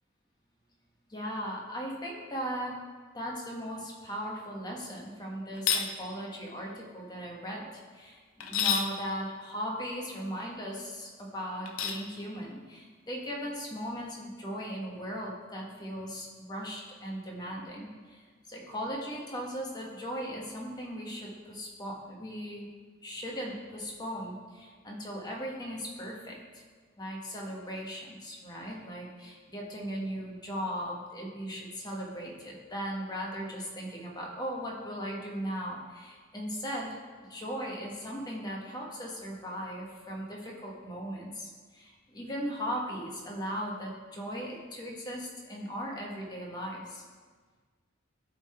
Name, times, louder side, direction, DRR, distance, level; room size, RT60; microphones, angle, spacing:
voice 1, 1.1-2.8 3.1-22.7 23.0-26.6 27.0-36.9 37.2-47.0, equal, 20° left, -2 dB, 1.3 m, -38 dB
sound 1, 5.6-5.9 8.4-8.9 11.7-12.0, left 7 dB, 85° left, 0.6 m, -28 dB
11.0 x 3.8 x 4.3 m, 1.5 s
head